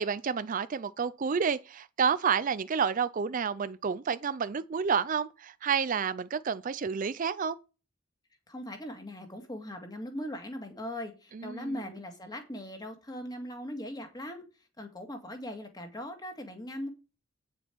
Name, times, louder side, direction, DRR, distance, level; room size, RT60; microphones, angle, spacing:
voice 1, 0.0-7.6 11.3-11.8, right 6 dB, 40° right, 0.4 m, -30 dB
voice 2, 8.5-14.5 14.8-16.9, left 1 dB, 20° left, 1.9 m, -40 dB
9.2 x 7.1 x 4.5 m
head